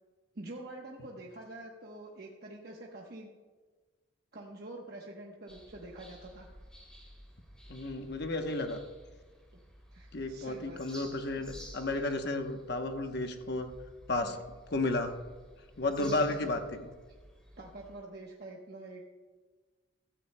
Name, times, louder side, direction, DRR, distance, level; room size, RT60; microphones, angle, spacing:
voice 1, 0.3-3.3 4.3-6.5 9.5-9.6 9.9-11.0 14.2-14.4 16.0-16.6 17.6-19.0, right 2 dB, 50° right, -1 dB, 1.0 m, -46 dB
sound 1, 5.5-18.0, equal, 5° left, 2.8 m, -53 dB
voice 2, 7.7-8.8 10.1-13.7 14.1-14.4 14.7-15.1 15.8-16.6, left 2 dB, 55° left, 5 dB, 0.9 m, -32 dB
16.0 x 13.5 x 2.2 m, 1.4 s
head